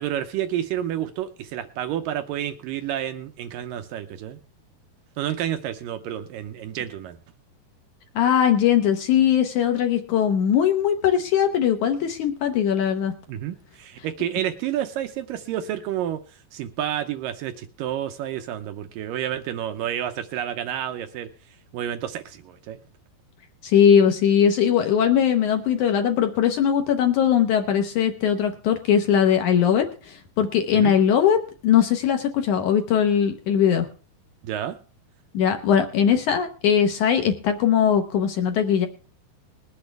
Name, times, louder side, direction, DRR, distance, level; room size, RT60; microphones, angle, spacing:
voice 1, 0.0-4.4 5.2-7.2 13.3-21.3 21.7-22.8 30.7-31.0 34.4-34.8, right 11 dB, 85° right, 8 dB, 2.0 m, -30 dB
voice 2, 8.1-13.1 23.6-33.9 35.3-38.9, left 8 dB, 75° left, 6 dB, 1.8 m, -20 dB
21.0 x 8.6 x 3.4 m, 0.38 s
omnidirectional pair, 5.0 m